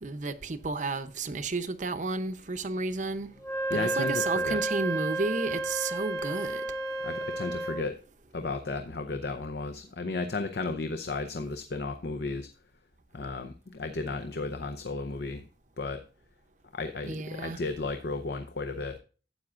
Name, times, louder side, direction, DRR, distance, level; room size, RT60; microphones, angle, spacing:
voice 1, 0.0-3.3 3.7-6.7 17.0-17.6, right 3 dB, 45° right, 0.7 m, -32 dB
Wind instrument woodwind instrument, 3.4-7.9, right 2 dB, 20° left, 1.2 m, -31 dB
voice 2, 3.7-4.6 7.0-8.0 8.3-12.5 13.1-15.4 15.8-16.0 16.7-19.0, left 3 dB, 60° left, 0.7 m, -34 dB
12.5 x 8.6 x 2.5 m
head